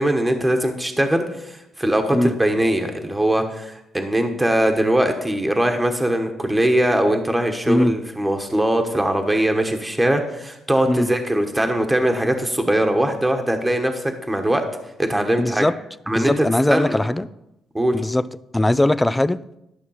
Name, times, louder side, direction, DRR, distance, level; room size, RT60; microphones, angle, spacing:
voice 1, 0.0-14.7 15.0-15.6 16.1-17.1 17.7-17.9, right 1 dB, 10° right, 4 dB, 1.3 m, -21 dB
voice 2, 15.4-15.7 16.1-17.3 17.9-18.3 18.5-19.4, left 1 dB, 10° left, 16 dB, 0.4 m, -19 dB
12.0 x 6.1 x 5.7 m, 0.85 s
cardioid pair, 90°, 0 cm